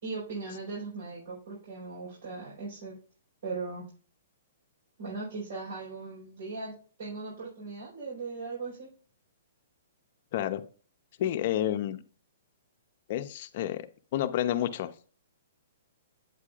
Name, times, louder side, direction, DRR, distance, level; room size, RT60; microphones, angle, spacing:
voice 1, 0.0-3.0 3.4-3.9 5.0-8.9, right 3 dB, 70° right, -5 dB, 4.5 m, -38 dB
voice 2, 11.2-12.0 13.1-13.8 14.1-15.1, left 11 dB, 45° left, 8 dB, 0.7 m, -30 dB
8.4 x 8.2 x 2.5 m, 0.40 s
hypercardioid pair, 155°, 0 cm